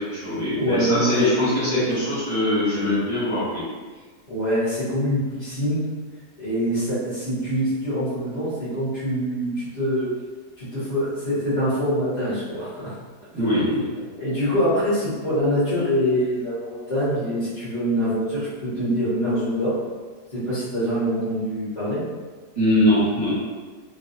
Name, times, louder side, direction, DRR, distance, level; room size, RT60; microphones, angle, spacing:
voice 1, 0.0-3.6 13.3-13.9 22.5-23.4, left 1 dB, 25° right, -13 dB, 1.1 m, -22 dB
voice 2, 0.5-1.8 4.3-5.8 6.4-10.1 10.6-12.9 14.2-19.7 20.3-22.0, equal, 40° left, -12 dB, 1.8 m, -24 dB
3.8 x 2.5 x 2.7 m, 1.4 s
omnidirectional pair, 1.7 m